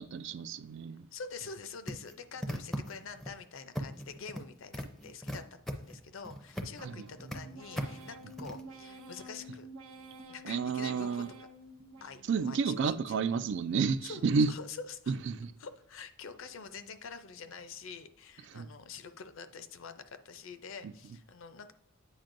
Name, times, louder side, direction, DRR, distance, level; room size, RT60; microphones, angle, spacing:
voice 1, 0.0-1.1 6.8-7.0 10.4-11.3 12.2-14.5 15.1-15.5 18.5-18.7, right 5 dB, 55° right, 0.3 m, -31 dB
voice 2, 1.1-9.7 10.3-11.2 12.0-13.0 14.0-15.1 15.6-21.7, left 5 dB, 65° left, 0.5 m, -46 dB
sound 1, 1.9-3.3 3.7-4.4 4.7-6.8 7.1-7.4 7.8-8.6, equal, ahead, 0.5 m, -38 dB
sound 2, 6.8-12.6 13.0-13.7 14.1-14.8 15.2-15.9 16.3-16.9 17.4-18.0, right 1 dB, 75° right, 0.7 m, -51 dB
8.8 x 5.2 x 2.6 m
head